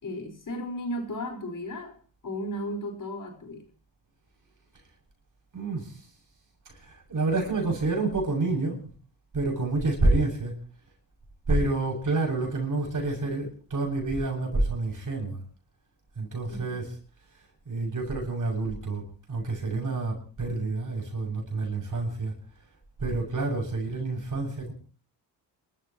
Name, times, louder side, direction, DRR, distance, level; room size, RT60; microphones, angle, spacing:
voice 1, 0.0-1.9 2.2-3.6 16.5-16.8, equal, 45° left, 3 dB, 5.0 m, -35 dB
voice 2, 5.5-6.0 6.7-8.9 9.3-10.5 11.5-15.4 16.2-17.0 17.7-22.3 23.0-24.7, right 2 dB, 45° right, 0 dB, 7.3 m, -28 dB
30.0 x 13.5 x 3.1 m, 0.38 s
cardioid pair, 65°, 44 cm